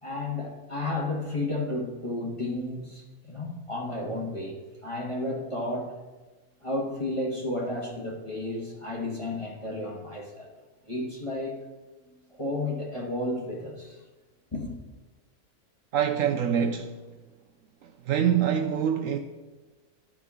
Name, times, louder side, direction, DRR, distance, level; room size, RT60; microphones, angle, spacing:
voice 1, 0.0-5.9 6.6-10.5 10.9-11.6 12.3-14.0 14.5-14.7, left 2 dB, 20° left, 1.2 m, -32 dB
voice 2, 15.9-17.0 17.8-19.2, right 8 dB, 70° right, 0.9 m, -25 dB
12.5 x 4.9 x 3.6 m
omnidirectional pair, 1.6 m